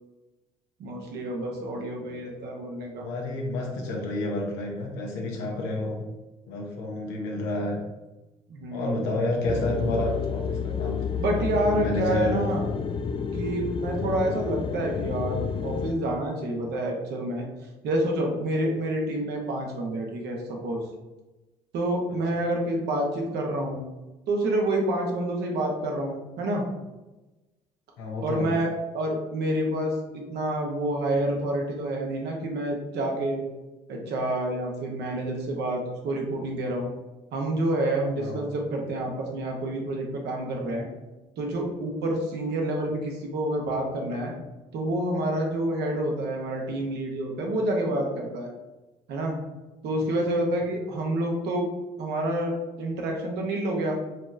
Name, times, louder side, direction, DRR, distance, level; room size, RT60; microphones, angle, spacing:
voice 1, 0.8-3.1 8.5-9.1 10.5-10.6 11.2-12.7 13.3-17.5 17.8-20.8 21.7-23.8 24.3-26.6 28.2-33.4 33.9-36.9 37.3-40.9 41.4-44.3 44.7-48.5 49.1-49.4 49.8-51.7 52.0-54.0, right 1 dB, 70° right, 0 dB, 0.9 m, -28 dB
voice 2, 3.0-6.0 6.5-7.8 8.7-11.0 11.3-12.4 14.0-14.2 22.3-22.4 28.0-28.5 38.2-38.4, left 2 dB, 85° left, 0 dB, 0.9 m, -30 dB
sound 1, 9.5-15.9, left 6 dB, 30° left, 0.3 m, -30 dB
4.3 x 3.0 x 2.6 m, 1.1 s
hypercardioid pair, 55°, 18 cm